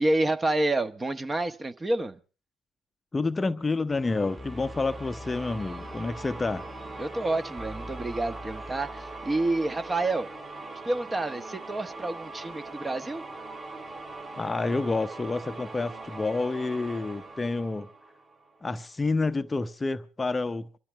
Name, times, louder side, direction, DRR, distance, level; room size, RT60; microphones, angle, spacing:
voice 1, 0.0-2.2 7.0-10.3 10.8-13.2, right 2 dB, 20° right, 1.3 m, -28 dB
voice 2, 3.1-6.7 14.4-17.9 18.6-20.8, left 3 dB, 20° left, 0.8 m, -29 dB
sound 1, 3.9-10.3, left 1 dB, 5° right, 1.7 m, -44 dB
sound 2, 4.1-18.7, right 3 dB, 40° right, 7.3 m, -42 dB
24.5 x 13.0 x 3.5 m
hypercardioid pair, 55°, 0 cm